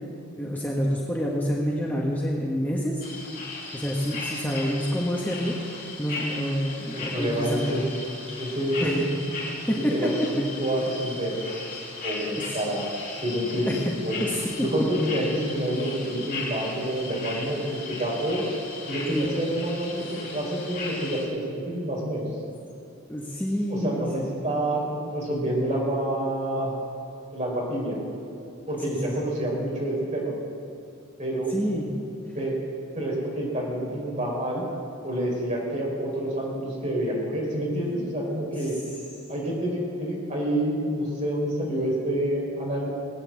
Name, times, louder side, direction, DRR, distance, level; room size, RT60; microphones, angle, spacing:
voice 1, 0.4-3.0 3.7-5.6 6.0-7.7 8.8-8.9 9.7-10.1 12.3-12.4 13.7-13.8 14.2-14.4 19.1-19.3 23.1-24.1 28.9-29.1 31.5-31.9 38.4-38.7, equal, 10° left, -3 dB, 1.4 m, -28 dB
sound 1, 3.0-21.2, left 3 dB, 45° left, 4.6 m, -37 dB
voice 2, 6.9-7.8 8.4-9.1 9.7-11.3 12.0-13.8 14.0-14.3 14.6-18.4 18.9-20.1 20.3-22.3 23.7-26.7 27.3-28.0 28.7-30.3 31.2-31.5 32.3-32.6 32.9-34.6 35.0-38.7 39.3-42.9, right 1 dB, 35° right, -3 dB, 4.2 m, -28 dB
19.5 x 9.2 x 7.6 m, 2.6 s
head